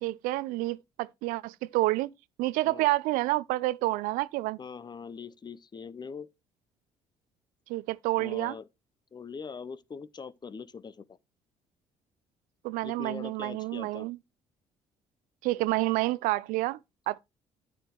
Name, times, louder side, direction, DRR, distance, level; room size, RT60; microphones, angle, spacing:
voice 1, 0.0-2.1 2.4-4.6 7.7-8.6 12.6-14.2 15.4-16.8 17.1-17.2, right 19 dB, 70° right, 0.4 m, -29 dB
voice 2, 4.6-6.3 8.2-8.6 9.1-11.1 12.8-14.1, left 5 dB, 30° left, 0.6 m, -42 dB
8.9 x 8.7 x 2.9 m
hypercardioid pair, 60°, 14 cm